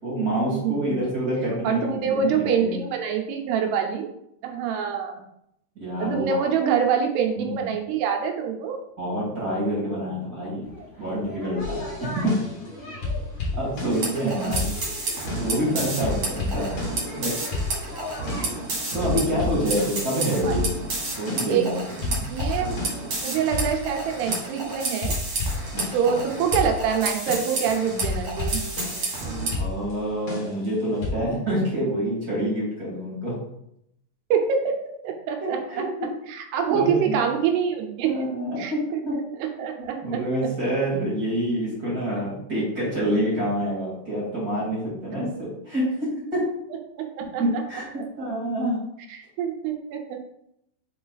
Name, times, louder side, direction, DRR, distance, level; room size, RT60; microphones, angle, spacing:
voice 1, 0.0-2.8 5.8-6.4 7.3-7.7 9.0-10.7 11.0-12.4 13.5-14.6 15.3-16.7 17.2-17.3 18.9-20.7 21.2-22.3 25.7-26.2 29.5-33.3 35.4-36.1 36.7-37.2 38.0-39.2 40.0-46.4 47.4-47.8 48.2-48.8, equal, 25° right, -6 dB, 2.2 m, -27 dB
voice 2, 1.6-4.1 4.4-5.2 6.0-8.8 13.8-14.7 20.4-20.5 21.5-21.7 22.3-22.8 23.2-25.1 25.9-28.6 34.3-34.8 35.0-35.9 36.3-38.1 38.6-40.5 47.0-47.4 49.1-50.2, right 7 dB, 80° right, 4 dB, 2.8 m, -25 dB
sound 1, 10.6-18.6, equal, 10° left, 1.3 m, -39 dB
sound 2, 11.6-12.7 13.0-14.2 14.5-15.7 16.0-17.2 17.5-18.7 19.0-21.7 22.0-26.2 26.5-29.2 29.5-31.1, left 3 dB, 80° left, 0.9 m, -32 dB
sound 3, 13.9-29.5, right 3 dB, 45° right, 2.4 m, -31 dB
5.7 x 4.7 x 4.0 m, 0.77 s
omnidirectional pair, 4.8 m